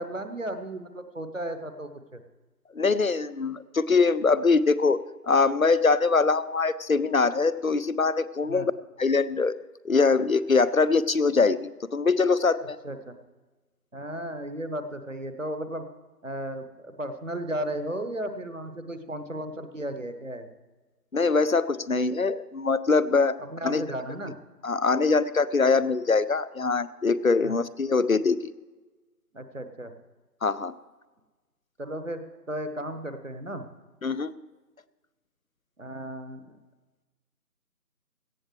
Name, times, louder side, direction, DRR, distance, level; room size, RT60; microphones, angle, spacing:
voice 1, 0.0-2.2 8.4-8.7 12.8-13.2 13.9-15.8 16.2-20.5 23.4-24.4 27.4-27.5 29.3-29.9 31.8-33.6 35.8-36.6, right 1 dB, 50° right, 9 dB, 1.1 m, -35 dB
voice 2, 2.7-8.7 9.0-9.5 9.8-12.8 21.1-23.4 23.6-23.8 24.6-28.5 30.4-30.7 34.0-34.3, left 4 dB, 60° left, 17 dB, 0.5 m, -23 dB
17.5 x 13.0 x 3.2 m, 1.2 s
figure-of-eight pair, 170°, 48 cm